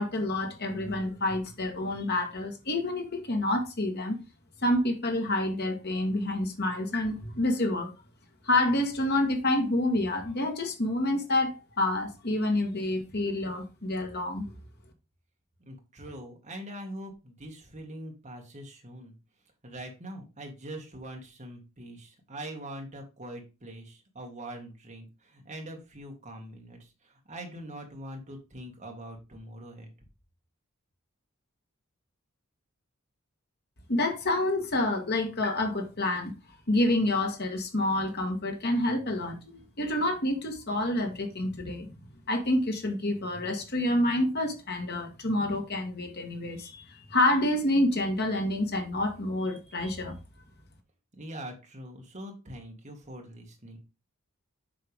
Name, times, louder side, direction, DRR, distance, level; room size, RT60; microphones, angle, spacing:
voice 1, 0.0-4.2 4.6-7.9 8.4-14.4 33.9-36.3 36.7-41.9 42.3-50.2, left 1 dB, 50° left, 1.6 m, -28 dB
voice 2, 15.6-19.1 19.6-29.9 51.1-53.8, right 1 dB, 35° right, 1.9 m, -43 dB
7.7 x 5.6 x 3.5 m
head